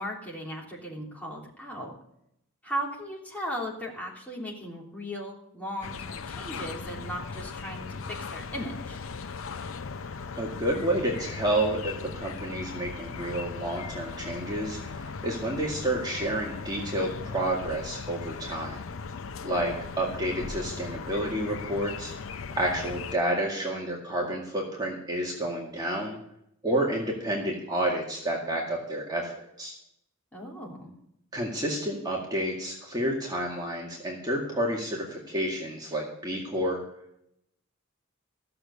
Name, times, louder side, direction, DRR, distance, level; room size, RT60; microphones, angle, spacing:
voice 1, 0.0-1.9 2.6-9.0 30.3-30.9, equal, 10° left, -3 dB, 3.2 m, -37 dB
sound 1, 5.8-23.2, left 5 dB, 70° left, 0.6 m, -38 dB
voice 2, 10.4-18.8 19.4-22.1 22.6-26.2 26.6-29.7 31.3-36.8, right 1 dB, 20° right, -2 dB, 2.1 m, -30 dB
15.5 x 6.9 x 8.1 m, 0.76 s
head